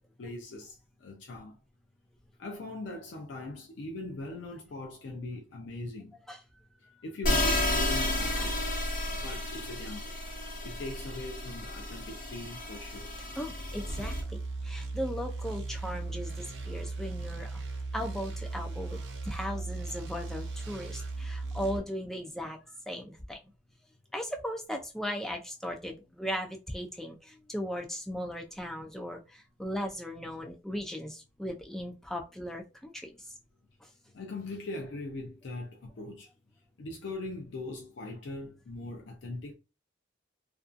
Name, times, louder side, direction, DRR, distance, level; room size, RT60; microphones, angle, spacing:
voice 1, 0.0-1.6 2.4-6.2 7.0-8.6 9.2-10.1 10.6-13.1 34.1-36.3 36.8-39.5, left 2 dB, 65° left, 0.4 m, -41 dB
sound 1, 7.2-14.2, left 1 dB, 40° left, 0.8 m, -32 dB
voice 2, 13.4-17.6 17.9-22.6 22.9-23.4 24.1-33.1 33.8-33.9, equal, ahead, 0.3 m, -37 dB
sound 2, 13.9-21.8, right 3 dB, 60° right, 0.5 m, -37 dB
2.5 x 2.3 x 2.4 m
head